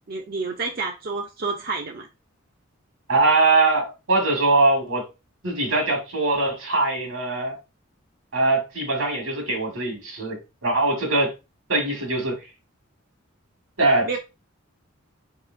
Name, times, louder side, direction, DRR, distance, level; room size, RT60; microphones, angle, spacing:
voice 1, 0.1-2.1 14.1-14.2, right 4 dB, 45° right, 0.5 m, -29 dB
voice 2, 3.1-5.1 5.4-7.6 8.3-11.3 11.7-12.4 13.8-14.2, right 2 dB, 90° right, 1.8 m, -22 dB
4.0 x 3.6 x 2.5 m
head